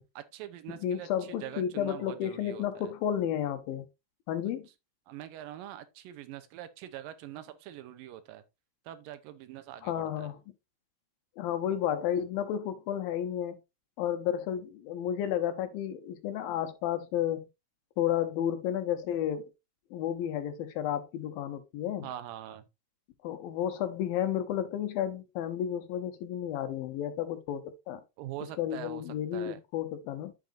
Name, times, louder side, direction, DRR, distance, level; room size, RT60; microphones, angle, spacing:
voice 1, 0.2-2.9 5.1-8.4 8.9-10.3 22.0-22.6 28.2-29.0 29.3-29.6, right 12 dB, 85° right, 2.5 m, -43 dB
voice 2, 0.8-3.9 4.3-4.7 9.8-10.4 11.4-13.6 14.0-17.5 18.0-19.5 19.9-22.1 23.2-28.0 28.6-30.3, left 10 dB, 85° left, 2.7 m, -32 dB
8.4 x 7.8 x 2.6 m
omnidirectional pair, 4.1 m